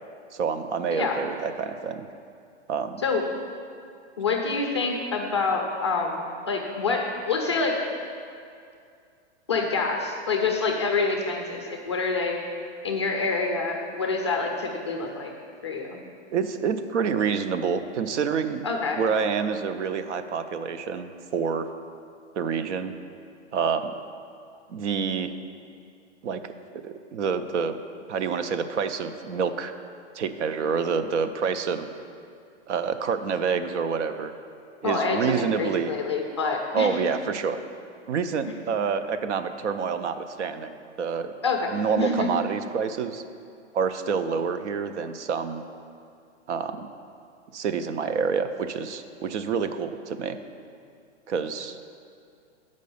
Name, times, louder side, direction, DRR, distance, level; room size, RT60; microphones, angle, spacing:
voice 1, 0.3-2.1 2.7-3.0 16.3-18.6 19.0-21.7 22.3-22.9 23.5-23.9 24.7-25.3 26.2-26.4 26.8-27.8 28.1-29.7 30.1-31.9 32.7-34.3 34.8-35.9 36.7-37.6 38.1-41.3 41.7-43.2 43.7-45.6 46.5-46.9 47.5-50.4 51.3-51.8, right 6 dB, 75° right, 10 dB, 0.7 m, -27 dB
voice 2, 4.2-7.8 9.5-12.4 12.8-15.3 15.6-16.0 18.6-19.0 34.8-36.9 41.4-42.3, left 4 dB, 25° left, 1 dB, 0.4 m, -27 dB
7.4 x 5.3 x 6.9 m, 2.4 s
hypercardioid pair, 170°, 35 cm